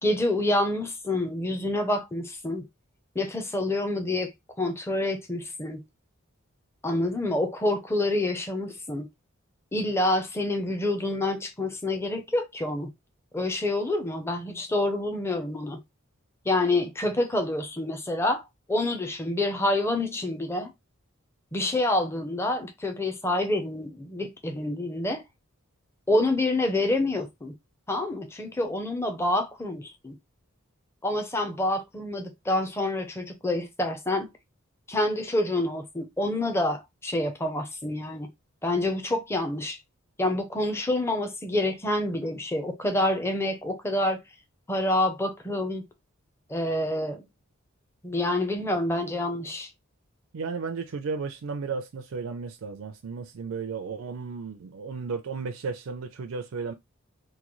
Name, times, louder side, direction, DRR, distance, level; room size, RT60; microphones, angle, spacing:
voice 1, 0.0-2.7 3.2-4.3 4.6-5.8 6.8-9.1 9.7-12.9 13.3-15.8 16.5-20.7 21.5-25.2 26.1-27.5 27.9-30.2 31.0-34.3 34.9-38.3 38.6-39.8 40.2-44.2 44.7-45.8 46.5-47.2 48.0-49.7, left 1 dB, 10° left, 0.5 m, -27 dB
voice 2, 50.3-56.7, right 5 dB, 75° right, 0.4 m, -34 dB
3.7 x 2.2 x 3.0 m
head